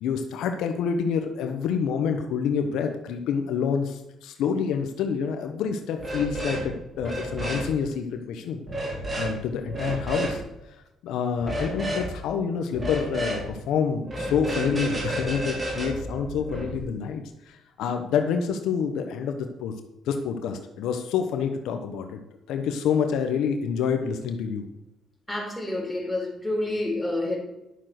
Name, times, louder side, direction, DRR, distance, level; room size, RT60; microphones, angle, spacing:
voice 1, 0.0-8.6 9.1-10.4 11.0-19.7 20.1-22.2 22.5-24.7, left 6 dB, 85° left, 1.1 m, -27 dB
sound 1, 6.0-6.7 7.0-7.7 8.7-9.3 9.7-10.4 11.4-12.1 12.7-13.5 14.0-16.8, right 1 dB, 30° right, 4.1 m, -31 dB
voice 2, 25.3-27.4, left 1 dB, 10° left, 4.6 m, -28 dB
11.5 x 6.5 x 6.0 m
cardioid pair, 90°, 0 cm